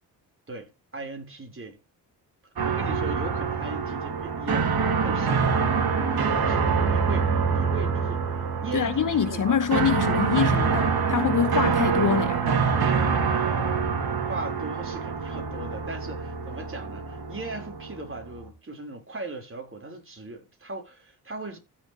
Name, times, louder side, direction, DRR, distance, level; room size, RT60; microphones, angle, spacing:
voice 1, 0.5-1.8 2.6-5.7 6.1-8.2 8.6-9.6 13.3-13.9 14.2-21.6, right 2 dB, 30° right, 5.3 m, -38 dB
sound 1, 2.6-18.5, right 5 dB, 55° right, 3.3 m, -25 dB
voice 2, 8.7-12.5, left 8 dB, 45° left, 1.1 m, -25 dB
15.5 x 6.8 x 3.4 m
supercardioid pair, 50°, 43 cm